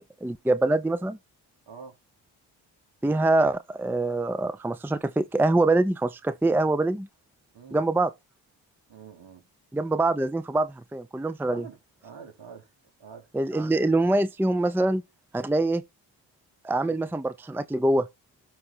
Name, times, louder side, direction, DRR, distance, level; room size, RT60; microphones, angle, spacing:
voice 1, 0.2-1.2 3.0-7.1 7.7-8.1 9.7-11.6 13.3-15.0 15.3-15.8 16.6-18.1, right 2 dB, 5° right, 0.6 m, -24 dB
voice 2, 8.9-9.5 11.4-11.8 12.0-12.7 13.0-13.3 16.8-17.1, right 6 dB, 65° right, 2.9 m, -46 dB
12.5 x 4.8 x 4.4 m
supercardioid pair, 55°, 48 cm